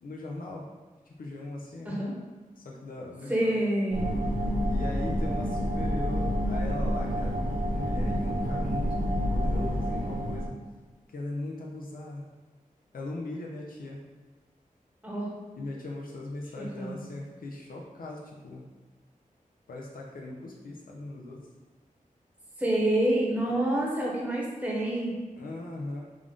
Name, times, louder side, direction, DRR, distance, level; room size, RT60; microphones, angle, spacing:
voice 1, 0.0-0.7 1.1-2.0 2.6-3.5 4.7-10.5 11.1-12.3 12.9-14.0 15.6-18.7 19.7-21.5 23.5-23.6 25.4-26.0, left 2 dB, 85° left, -2 dB, 0.5 m, -39 dB
voice 2, 3.3-4.1 15.0-15.3 16.6-17.0 22.6-25.1, right 1 dB, 10° right, -4 dB, 0.9 m, -27 dB
sound 1, 3.9-10.5, equal, 85° right, 0.8 m, -28 dB
3.7 x 2.4 x 3.5 m, 1.3 s
wide cardioid pair, 80°, 14 cm